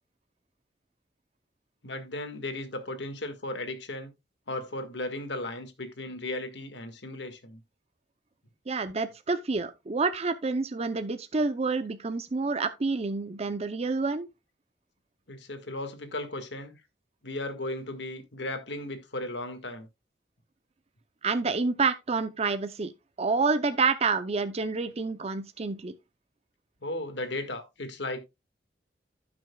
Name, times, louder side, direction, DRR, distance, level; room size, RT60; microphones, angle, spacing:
voice 1, 1.8-4.1 4.5-7.6 15.3-16.7 17.2-19.9 26.8-28.2, left 2 dB, 80° left, 1.7 m, -36 dB
voice 2, 8.7-14.3 21.2-22.9 23.2-25.9, right 4 dB, 35° right, 0.6 m, -28 dB
15.5 x 6.1 x 2.3 m
head